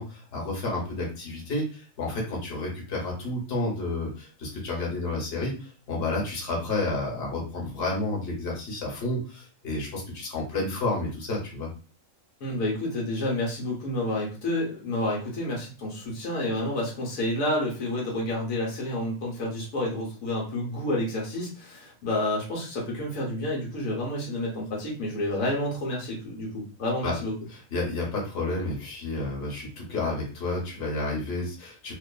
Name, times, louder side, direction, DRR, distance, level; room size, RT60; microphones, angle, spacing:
voice 1, 0.0-11.7 27.0-27.1 27.5-31.9, left 2 dB, 50° left, -2 dB, 1.1 m, -31 dB
voice 2, 12.4-27.3, left 1 dB, 85° left, -3 dB, 1.2 m, -29 dB
2.5 x 2.3 x 2.2 m, 0.36 s
omnidirectional pair, 1.4 m